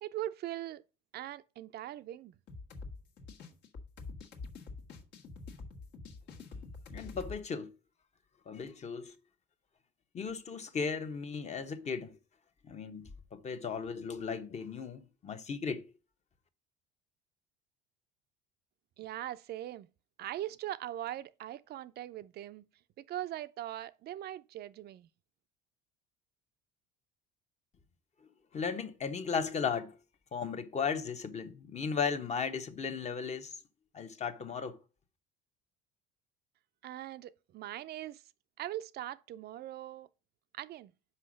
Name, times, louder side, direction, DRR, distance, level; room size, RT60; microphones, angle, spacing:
voice 1, 0.0-0.8 1.1-2.3 19.0-19.9 20.2-22.6 23.0-25.1 36.8-38.2 38.6-40.1 40.5-40.9, right 13 dB, 50° right, 0.5 m, -41 dB
sound 1, 2.5-7.4, left 3 dB, 60° left, 1.6 m, -46 dB
voice 2, 6.9-7.7 8.5-9.1 10.1-12.2 12.6-15.8 28.5-30.0 30.3-33.6 33.9-34.8, left 6 dB, 30° left, 1.1 m, -36 dB
5.6 x 5.2 x 6.3 m
supercardioid pair, 90°, 21 cm